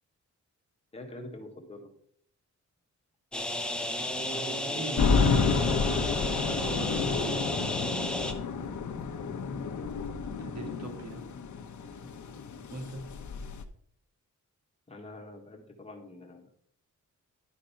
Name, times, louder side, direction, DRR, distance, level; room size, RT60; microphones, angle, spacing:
voice 1, 0.9-1.9 9.5-9.7 12.0-12.1 14.9-16.5, left 2 dB, 20° left, 1 dB, 1.5 m, -46 dB
sound 1, 3.3-8.3, left 1 dB, 5° left, 0.8 m, -32 dB
voice 2, 4.1-5.3 6.4-7.4 10.4-11.2 12.7-13.1, right 2 dB, 55° right, 4 dB, 1.9 m, -41 dB
sound 2, 5.0-13.6, left 5 dB, 70° left, 1.0 m, -30 dB
11.5 x 5.2 x 5.8 m, 0.63 s
wide cardioid pair, 175°, 31 cm